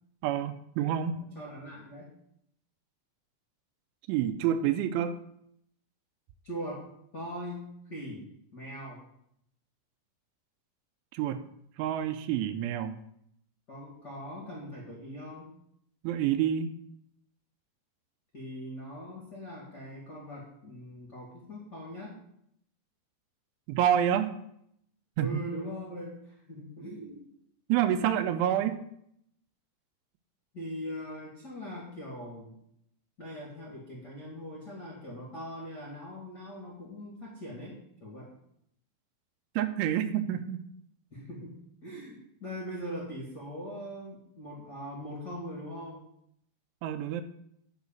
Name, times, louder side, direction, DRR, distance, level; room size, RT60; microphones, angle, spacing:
voice 1, 0.2-1.2 4.1-5.2 11.1-11.5 11.8-13.0 16.0-16.7 23.7-24.4 25.2-25.4 27.7-28.8 39.6-40.6 46.8-47.2, right 10 dB, 80° right, 9 dB, 2.9 m, -28 dB
voice 2, 1.3-2.1 6.4-6.8 7.1-9.0 13.7-15.5 18.3-22.2 25.2-27.2 30.5-32.5 33.2-38.3 41.1-46.0, equal, 45° left, -3 dB, 1.2 m, -41 dB
10.0 x 4.9 x 7.2 m, 0.73 s
omnidirectional pair, 5.7 m